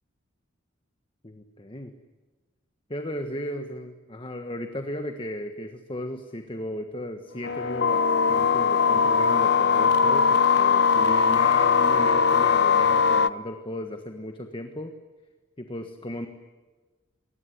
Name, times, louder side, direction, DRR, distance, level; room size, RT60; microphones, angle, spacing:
voice 1, 1.2-1.9 2.9-14.9 15.6-16.3, left 1 dB, 25° left, 6 dB, 1.4 m, -35 dB
sound 1, 7.4-13.3, left 5 dB, 55° left, 0.8 m, -20 dB
26.5 x 20.5 x 9.9 m, 1.3 s
head